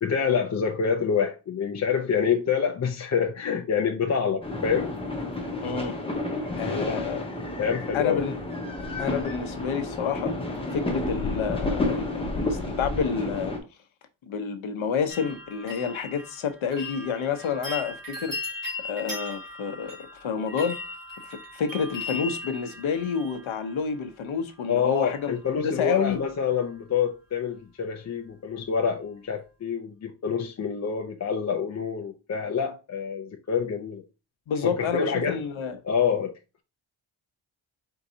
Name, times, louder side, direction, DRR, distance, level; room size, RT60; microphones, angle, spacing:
voice 1, 0.0-4.9 6.6-7.0 7.6-8.2 24.7-34.0 34.6-35.4 35.8-36.3, left 6 dB, 35° left, 0.5 m, -27 dB
sound 1, 4.4-13.6, left 2 dB, 10° left, 0.8 m, -31 dB
voice 2, 5.6-5.9 6.6-7.2 7.9-8.3 9.0-10.3 10.7-13.5 14.3-18.4 18.8-20.8 21.3-25.3 25.6-26.2 34.5-35.8, left 6 dB, 80° left, 0.9 m, -29 dB
sound 2, 15.1-24.0 24.9-25.5 25.7-26.3 26.6-26.7, left 2 dB, 45° right, 2.4 m, -38 dB
4.6 x 3.9 x 2.7 m
wide cardioid pair, 170°, 47 cm